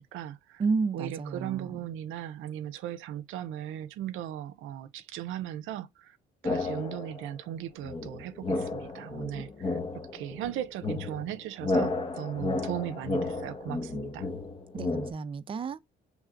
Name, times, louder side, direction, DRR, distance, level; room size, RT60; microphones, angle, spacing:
voice 1, 0.0-0.6 0.9-6.2 6.4-9.8 10.1-14.3, right 11 dB, 90° right, 0.5 m, -37 dB
voice 2, 0.6-1.8 14.7-15.8, right 4 dB, 25° right, 0.4 m, -31 dB
sound 1, 6.4-7.3 7.8-15.1, left 3 dB, 25° left, 0.8 m, -32 dB
6.3 x 3.2 x 2.5 m
cardioid pair, 90°, 20 cm